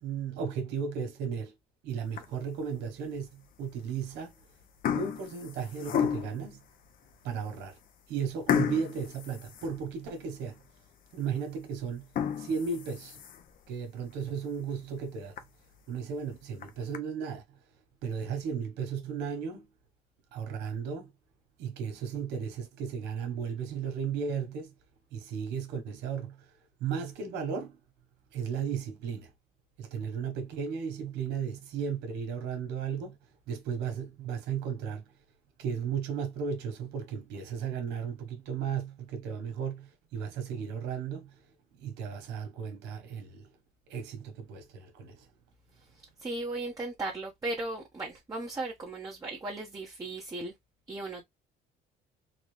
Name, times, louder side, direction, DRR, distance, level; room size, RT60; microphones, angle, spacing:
voice 1, 0.0-1.5 1.8-4.3 4.9-6.7 7.2-7.8 8.1-10.6 11.1-12.1 12.4-13.2 13.7-15.4 15.9-17.6 18.0-19.7 20.3-21.1 21.6-24.7 25.1-26.5 26.8-27.8 28.3-29.3 29.8-33.2 33.5-35.1 35.6-41.4 41.7-43.5 43.9-45.3, right 6 dB, 90° right, 1.3 m, -35 dB
sound 1, 2.0-2.6 3.1-3.3 4.1-4.4 4.6-6.5 7.1-7.2 7.6-7.7 8.5-10.2 10.7-10.8 11.2-11.3 12.0-13.6 14.0-14.1 14.5-14.6 15.0-15.1 15.4-15.5 16.4-17.0, left 8 dB, 55° left, 0.7 m, -32 dB
voice 2, 46.2-50.5 50.9-51.2, right 2 dB, 20° right, 1.0 m, -36 dB
4.0 x 2.3 x 3.2 m
cardioid pair, 110°, 17 cm